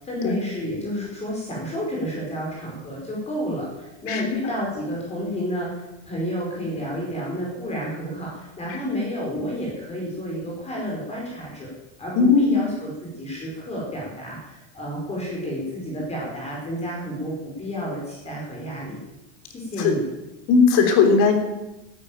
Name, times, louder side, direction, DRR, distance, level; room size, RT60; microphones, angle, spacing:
voice 1, 0.0-11.7 12.0-19.0 19.5-20.0, equal, 15° left, -4 dB, 5.0 m, -30 dB
voice 2, 12.2-12.6 19.8-19.9 20.5-21.3, left 5 dB, 45° left, 5 dB, 3.5 m, -18 dB
13.0 x 10.5 x 9.3 m, 0.98 s
supercardioid pair, 155°, 38 cm